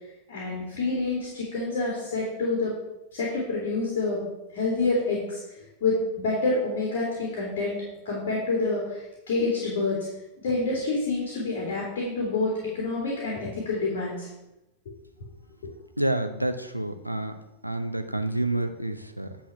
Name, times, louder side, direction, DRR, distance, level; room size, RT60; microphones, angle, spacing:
voice 1, 0.3-2.7 3.1-4.2 4.5-7.8 8.0-10.0 10.4-14.3 15.6-15.7, left 3 dB, 55° left, -3 dB, 2.9 m, -28 dB
voice 2, 16.0-17.3 17.6-19.4, right 1 dB, 90° right, 7 dB, 0.7 m, -28 dB
10.5 x 4.3 x 6.1 m, 0.92 s
figure-of-eight pair, 90°, 0 cm